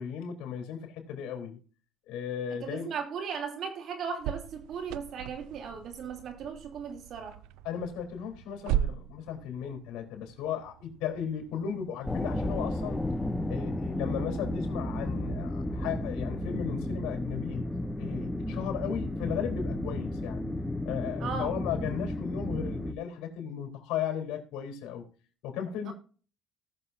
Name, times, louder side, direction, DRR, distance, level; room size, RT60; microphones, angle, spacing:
voice 1, 0.0-1.6 2.1-2.9 7.6-13.0 13.5-17.7 18.0-20.4 20.9-25.1 25.4-25.9, left 8 dB, 80° left, 3.6 m, -36 dB
voice 2, 2.6-7.4 21.2-21.6 25.8-25.9, right 6 dB, 60° right, 3.0 m, -37 dB
sound 1, 4.2-14.9, right 11 dB, 85° right, 0.4 m, -39 dB
sound 2, 12.1-22.9, left 1 dB, 10° left, 1.1 m, -33 dB
18.5 x 6.9 x 2.7 m
cardioid pair, 90°, 0 cm